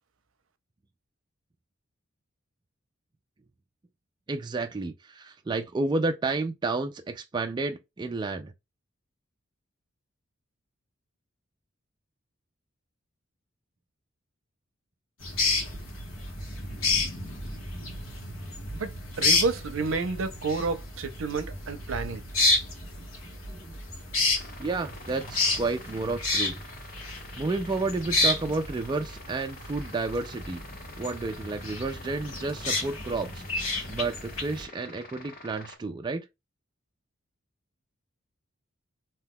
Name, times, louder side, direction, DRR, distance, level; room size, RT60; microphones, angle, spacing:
voice 1, 4.3-8.5 22.8-22.9 23.2-23.8 24.6-26.6 27.4-30.6 31.0-33.4 33.9-36.3, right 3 dB, 20° right, 0.3 m, -31 dB
sound 1, 15.2-34.6, left 2 dB, 80° left, 1.2 m, -31 dB
voice 2, 18.7-22.2, right 4 dB, 70° right, 0.6 m, -30 dB
sound 2, 24.4-35.7, left 2 dB, 45° left, 1.1 m, -47 dB
2.8 x 2.3 x 3.6 m
head